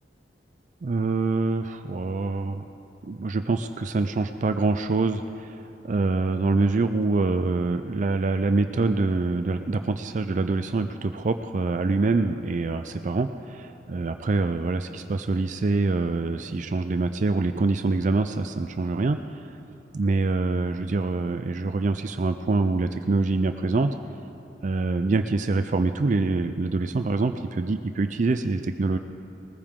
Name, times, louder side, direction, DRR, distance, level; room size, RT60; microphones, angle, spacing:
voice 1, 0.8-2.6 3.0-13.3 13.9-19.5 19.9-23.9 24.6-29.0, right 3 dB, 45° right, 8 dB, 0.4 m, -25 dB
20.5 x 15.0 x 3.7 m, 2.8 s
head